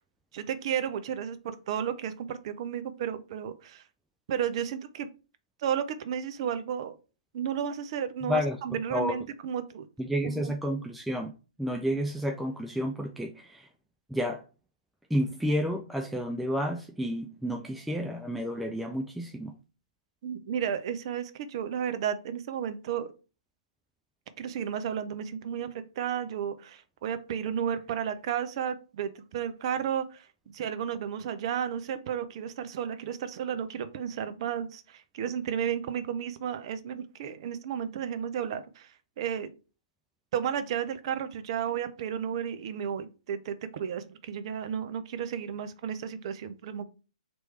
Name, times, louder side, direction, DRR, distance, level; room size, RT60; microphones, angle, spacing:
voice 1, 0.3-3.8 4.3-5.1 5.6-7.0 7.3-9.9 10.2-10.5 20.2-23.1 24.4-25.7 26.0-30.2 30.5-38.9 39.2-39.5 40.3-46.8, right 8 dB, 45° right, 0.6 m, -33 dB
voice 2, 8.3-8.6 8.9-9.2 10.0-11.3 11.6-13.6 14.1-14.4 15.1-19.5, equal, ahead, 0.3 m, -30 dB
3.2 x 3.1 x 4.6 m
hypercardioid pair, 130°, 4 cm